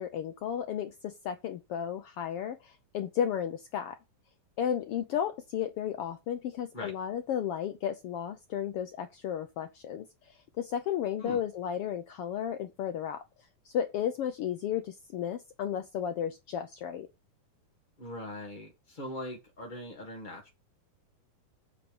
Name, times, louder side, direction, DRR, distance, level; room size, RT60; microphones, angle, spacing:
voice 1, 0.0-4.0 4.6-13.2 13.6-17.1, left 9 dB, 85° left, 1.2 m, -33 dB
voice 2, 18.0-20.5, left 1 dB, 20° left, 1.4 m, -41 dB
8.8 x 4.8 x 6.9 m
omnidirectional pair, 3.6 m